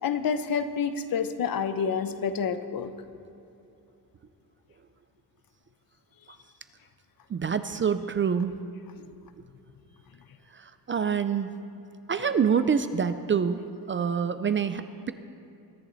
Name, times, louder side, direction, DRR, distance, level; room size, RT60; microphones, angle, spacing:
voice 1, 0.0-2.9, left 6 dB, 60° left, 11 dB, 0.8 m, -28 dB
voice 2, 7.3-8.5 10.5-11.5 12.1-13.6 13.9-15.1, right 6 dB, 30° right, 11 dB, 0.4 m, -26 dB
22.5 x 10.5 x 4.0 m, 2.8 s
wide cardioid pair, 180°, 39 cm